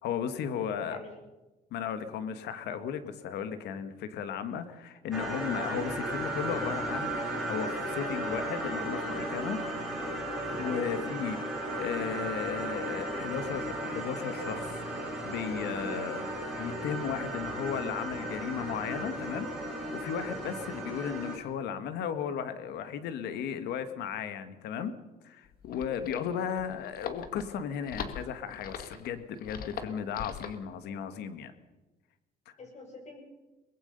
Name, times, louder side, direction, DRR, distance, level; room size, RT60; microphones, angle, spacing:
voice 1, 0.0-1.0 1.7-7.1 7.5-9.6 10.5-14.8 15.2-16.2 16.6-24.9 25.2-31.5 32.5-32.6, left 8 dB, 80° left, 10 dB, 1.9 m, -35 dB
voice 2, 0.6-1.2 10.7-11.0 15.9-16.2 20.6-20.9 25.9-26.2 32.6-33.2, left 2 dB, 40° left, 3 dB, 7.2 m, -46 dB
sound 1, 5.1-21.4, right 1 dB, ahead, 7.1 m, -35 dB
sound 2, 25.4-30.6, left 7 dB, 60° left, 1.9 m, -42 dB
23.5 x 20.0 x 5.5 m, 1.1 s
cardioid pair, 110°, 17 cm